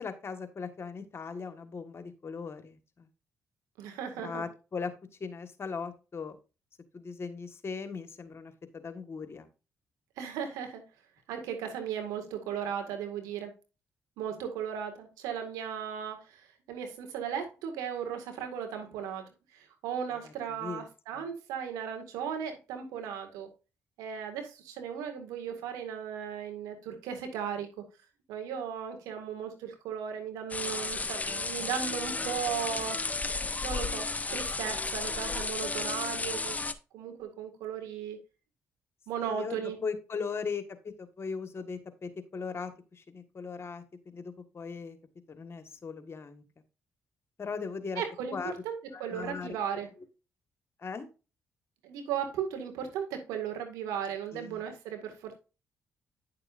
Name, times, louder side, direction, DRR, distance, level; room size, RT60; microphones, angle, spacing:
voice 1, 0.0-3.1 4.2-4.9 5.2-6.4 6.9-9.5 20.2-20.8 21.1-21.3 39.2-45.0 45.3-46.4 47.4-48.0 48.3-48.5 48.9-49.6 50.8-51.1 54.3-54.6, left 5 dB, 45° left, 9 dB, 1.5 m, -39 dB
voice 2, 3.8-4.4 10.2-10.8 11.3-13.5 14.2-19.2 19.5-23.5 24.0-27.8 28.3-33.0 33.6-36.6 36.9-38.2 39.1-39.8 48.0-48.4 48.6-49.9 51.8-55.4, right 8 dB, 90° right, 5 dB, 1.9 m, -36 dB
sound 1, 30.5-36.7, left 3 dB, 25° left, 0.9 m, -33 dB
9.9 x 6.7 x 2.6 m, 0.31 s
supercardioid pair, 55°, 6 cm